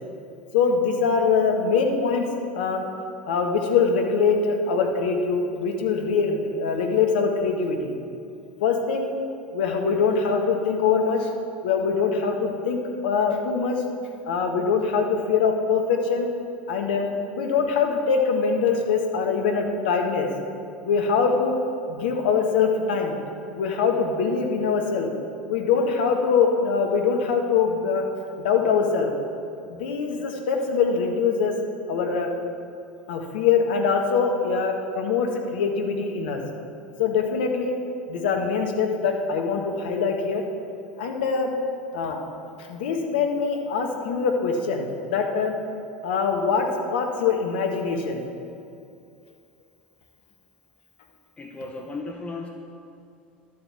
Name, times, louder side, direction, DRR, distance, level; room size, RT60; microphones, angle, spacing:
voice 1, 0.5-2.3 2.5-2.8 3.3-7.9 8.6-9.1 9.5-11.3 11.6-13.8 14.2-16.3 16.7-17.1 17.3-20.3 20.8-21.6 21.9-23.2 23.6-25.1 25.5-28.0 28.4-29.1 29.7-31.5 31.9-32.3 33.1-36.4 37.0-37.7 38.1-40.4 41.0-41.5 41.9-42.2 42.7-45.5 46.0-48.2, left 5 dB, 65° left, 3 dB, 1.5 m, -23 dB
voice 2, 51.4-52.5, left 3 dB, 20° left, 2 dB, 1.1 m, -35 dB
11.5 x 8.0 x 7.2 m, 2.5 s
figure-of-eight pair, 75°, 6 cm